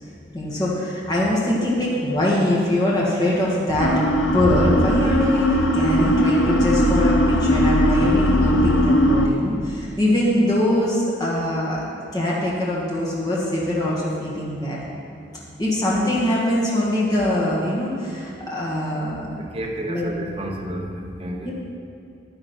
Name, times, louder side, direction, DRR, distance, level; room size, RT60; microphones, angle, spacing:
voice 1, 0.3-11.8 12.1-14.8 15.6-19.3 19.9-20.1 21.4-21.5, left 1 dB, 20° left, -6 dB, 1.8 m, -22 dB
sound 1, 3.8-9.3, equal, 90° left, 0.8 m, -19 dB
voice 2, 19.5-21.5, right 1 dB, 30° right, -1 dB, 1.2 m, -30 dB
10.5 x 10.5 x 4.5 m, 2.5 s
head